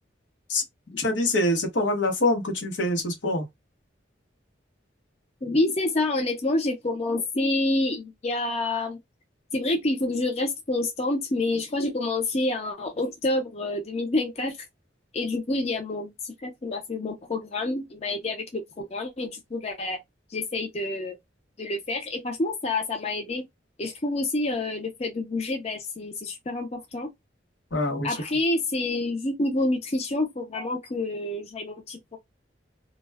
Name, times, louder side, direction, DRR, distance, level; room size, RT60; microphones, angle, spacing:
voice 1, 1.0-3.4 27.7-28.2, left 1 dB, 80° left, 0.9 m, -25 dB
voice 2, 5.4-9.0 9.5-14.6 15.1-20.0 20.3-21.2 21.6-23.4 23.8-27.1 28.0-32.2, left 2 dB, 35° left, 0.5 m, -28 dB
2.3 x 2.1 x 3.3 m
head